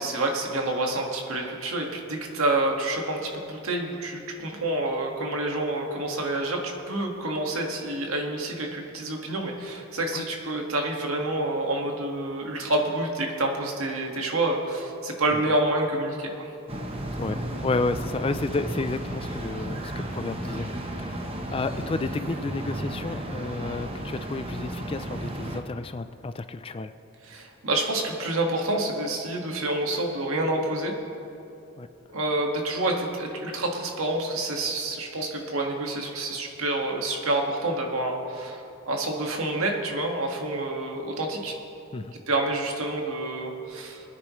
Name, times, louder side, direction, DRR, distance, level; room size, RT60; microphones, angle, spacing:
voice 1, 0.0-6.6 6.9-16.5 27.2-30.9 32.1-38.6 38.9-41.6 42.3-44.0, right 2 dB, 90° right, 1 dB, 1.8 m, -28 dB
sound 1, 16.7-25.6, right 1 dB, 25° right, 1.0 m, -33 dB
voice 2, 17.2-20.7 21.0-26.9 31.8-31.9 41.9-42.1, left 3 dB, 25° left, 11 dB, 0.4 m, -31 dB
23.5 x 9.8 x 3.1 m, 2.7 s
head